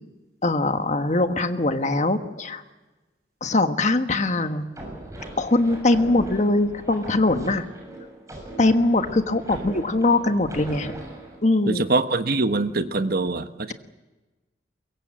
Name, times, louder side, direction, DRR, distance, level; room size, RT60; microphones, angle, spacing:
voice 1, 0.4-2.6 3.4-4.7 5.4-7.7 8.6-10.9 11.4-11.8, left 2 dB, 45° left, 8 dB, 1.4 m, -22 dB
sound 1, 4.7-11.4, right 1 dB, 20° right, 7.1 m, -39 dB
voice 2, 11.7-13.7, right 3 dB, 60° right, 10 dB, 1.2 m, -23 dB
23.0 x 23.0 x 7.6 m, 1.2 s
head